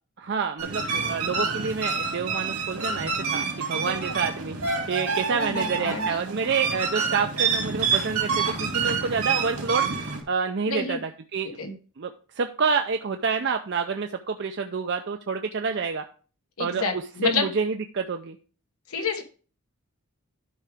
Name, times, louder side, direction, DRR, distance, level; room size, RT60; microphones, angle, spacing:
voice 1, 0.2-4.6 4.9-9.9 10.3-11.6 12.0-16.0 16.6-18.4, right 5 dB, 50° right, 5 dB, 0.5 m, -28 dB
sound 1, 0.6-10.2, right 5 dB, 80° right, 2.2 m, -28 dB
voice 2, 5.3-6.2 10.7-11.0 11.6-11.7 16.6-17.5 18.9-19.2, left 4 dB, 80° left, 5 dB, 1.3 m, -29 dB
12.0 x 4.8 x 3.4 m, 0.38 s
head